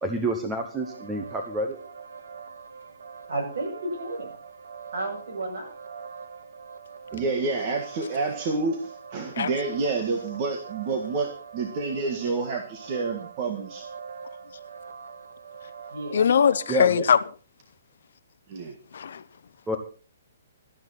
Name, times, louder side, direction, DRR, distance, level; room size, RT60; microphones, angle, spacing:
voice 1, 0.0-1.8 7.1-7.2 16.7-17.1 19.7-19.8, right 1 dB, 5° right, 1.0 m, -28 dB
sound 1, 0.8-16.9, right 6 dB, 80° right, 2.0 m, -43 dB
voice 2, 3.3-4.4 4.9-5.7 15.9-16.3, right 2 dB, 50° right, 7.5 m, -32 dB
voice 3, 7.1-13.9 18.5-18.7, right 3 dB, 25° right, 1.7 m, -29 dB
voice 4, 16.1-17.2 18.9-19.2, left 7 dB, 55° left, 0.8 m, -21 dB
17.5 x 13.0 x 4.2 m
hypercardioid pair, 180°, 0 cm